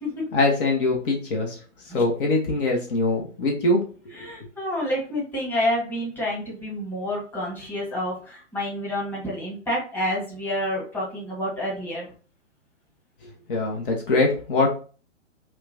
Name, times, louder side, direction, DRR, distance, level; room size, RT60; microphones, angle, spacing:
voice 1, 0.3-1.6 1.8-3.8 13.5-14.7, left 2 dB, 45° left, 0 dB, 1.0 m, -22 dB
voice 2, 4.1-12.0, left 1 dB, 5° left, -5 dB, 1.3 m, -28 dB
5.6 x 2.3 x 2.6 m, 0.38 s
hypercardioid pair, 130°, 37 cm